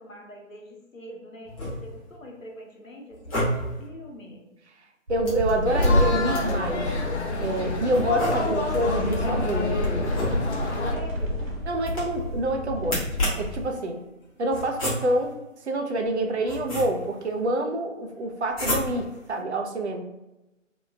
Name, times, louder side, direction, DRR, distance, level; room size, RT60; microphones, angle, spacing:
voice 1, 0.0-4.4 10.9-11.5, right 1 dB, 90° left, 0 dB, 1.0 m, -44 dB
sound 1, 1.4-2.1 3.1-3.9 5.2-6.7 7.9-8.8 10.0-10.8 11.8-12.3 12.8-13.6 14.5-15.3 16.1-17.2 18.5-19.2, left 1 dB, 25° left, 1.0 m, -31 dB
voice 2, 5.1-7.1 7.4-9.8 11.7-13.1 13.4-14.0 14.4-15.3 15.6-20.1, right 1 dB, 60° right, 4 dB, 0.6 m, -27 dB
sound 2, 5.1-13.7, left 1 dB, 85° right, 1.2 m, -29 dB
sound 3, 5.6-10.9, left 3 dB, 60° left, 0.6 m, -28 dB
2.9 x 2.3 x 3.2 m, 0.98 s
figure-of-eight pair, 145°, 39 cm